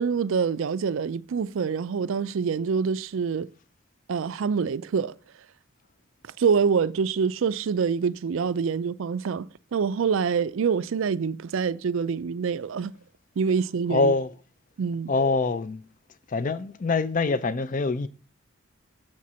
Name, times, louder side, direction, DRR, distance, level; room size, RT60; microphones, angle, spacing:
voice 1, 0.0-3.5 4.1-5.1 6.4-12.9 13.4-14.1 14.8-15.1, right 6 dB, 65° right, 0.4 m, -26 dB
voice 2, 13.9-14.3 15.1-15.8 16.3-18.1, left 3 dB, 40° left, 0.4 m, -24 dB
7.6 x 4.2 x 6.1 m
head